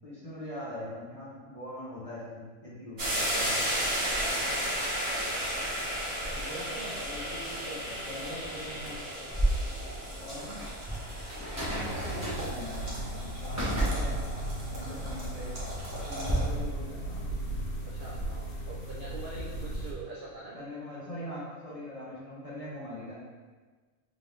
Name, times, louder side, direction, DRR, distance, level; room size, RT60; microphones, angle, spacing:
voice 1, 0.0-3.6 6.3-9.0 10.1-10.7 11.5-12.9 13.4-14.2 14.7-15.6 16.0-17.2 20.5-23.1, left 1 dB, 30° left, -8 dB, 0.7 m, -42 dB
sound 1, 3.0-16.4, equal, 45° right, 1.1 m, -34 dB
voice 2, 4.2-4.8 6.5-6.9 9.8-10.1 17.8-20.6, right 3 dB, 75° right, -5 dB, 0.4 m, -45 dB
sound 2, 9.3-16.3, right 1 dB, 15° right, 0.8 m, -34 dB
sound 3, 11.6-19.9, right 1 dB, 65° left, 1.1 m, -37 dB
3.8 x 2.7 x 3.3 m, 1.4 s
omnidirectional pair, 1.5 m